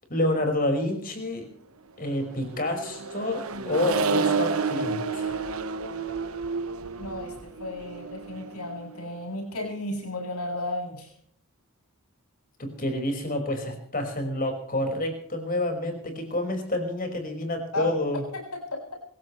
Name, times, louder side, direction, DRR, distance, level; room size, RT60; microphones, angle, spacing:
voice 1, 0.1-1.5 2.0-5.3 12.6-18.2, left 1 dB, 40° left, 4 dB, 5.4 m, -28 dB
Accelerating revving vroom, 2.3-9.0, right 4 dB, 75° right, 1.2 m, -30 dB
voice 2, 7.0-7.3 7.6-11.1 17.7-17.9 18.7-18.8, left 1 dB, 90° left, 2 dB, 7.7 m, -33 dB
26.0 x 16.5 x 3.3 m, 0.62 s
head